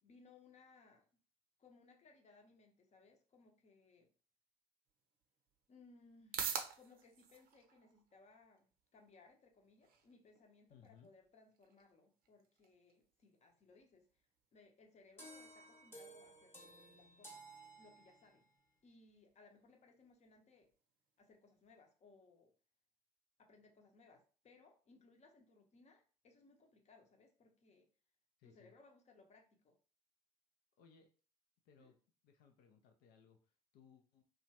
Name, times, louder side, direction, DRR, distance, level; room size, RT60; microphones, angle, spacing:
voice 1, 0.0-1.0 1.6-4.1 5.7-6.5 6.8-14.2 14.5-16.6 16.9-17.5 17.8-18.5 18.8-20.7 21.2-22.5 23.4-27.9 28.4-29.8 31.8-31.9, left 3 dB, 35° left, 3 dB, 0.8 m, -65 dB
sound 1, 4.9-21.8, right 7 dB, 55° right, 0.6 m, -52 dB
voice 2, 10.7-11.1 28.4-28.7 30.8-31.1 31.7-32.0 32.2-34.2, left 7 dB, 60° left, 4 dB, 0.5 m, -65 dB
sound 2, 15.2-18.5, right 1 dB, 10° left, 1.0 m, -56 dB
2.8 x 2.3 x 2.8 m, 0.38 s
figure-of-eight pair, 55°, 19 cm